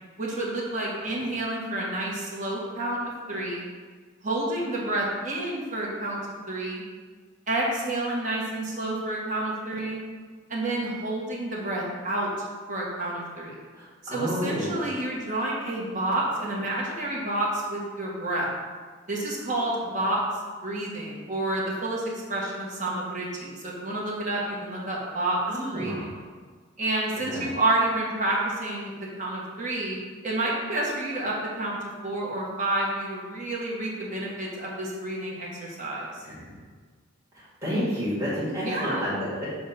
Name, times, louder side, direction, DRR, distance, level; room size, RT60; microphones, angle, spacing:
voice 1, 0.2-3.7 4.2-6.2 6.5-6.8 7.5-10.0 10.5-12.3 12.7-13.5 14.0-18.5 19.1-20.2 20.6-22.0 22.3-25.4 25.7-26.1 26.8-30.0 30.2-36.2 38.6-39.1, right 2 dB, 35° right, -4 dB, 1.2 m, -29 dB
voice 2, 13.7-14.7 25.5-26.2 27.3-27.5 36.2-36.3 37.3-39.5, equal, 15° right, -11 dB, 1.7 m, -30 dB
7.1 x 2.4 x 5.6 m, 1.5 s
head